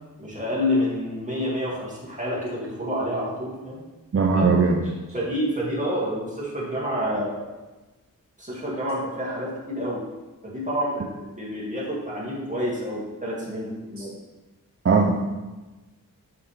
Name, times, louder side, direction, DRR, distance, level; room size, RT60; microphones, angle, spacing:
voice 1, 0.2-3.8 4.3-4.5 5.1-7.5 8.4-10.0 10.4-11.1 11.4-14.1, equal, 20° right, -5 dB, 2.2 m, -28 dB
voice 2, 4.1-4.8 14.8-15.2, right 4 dB, 40° right, 3 dB, 0.6 m, -19 dB
5.8 x 5.8 x 3.4 m, 1.2 s
wide cardioid pair, 55°, 34 cm